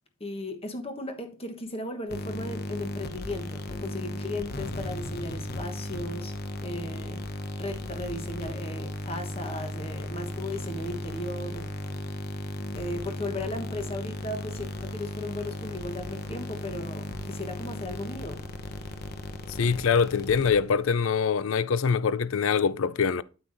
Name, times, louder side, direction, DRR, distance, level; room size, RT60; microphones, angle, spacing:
voice 1, 0.2-6.3 6.6-7.2 7.6-11.7 12.8-18.5, left 1 dB, 30° left, 1.2 m, -36 dB
sound 1, 2.1-20.9, left 1 dB, 50° left, 0.9 m, -36 dB
voice 2, 19.6-23.2, left 6 dB, 70° left, 0.5 m, -24 dB
9.0 x 8.0 x 2.6 m
head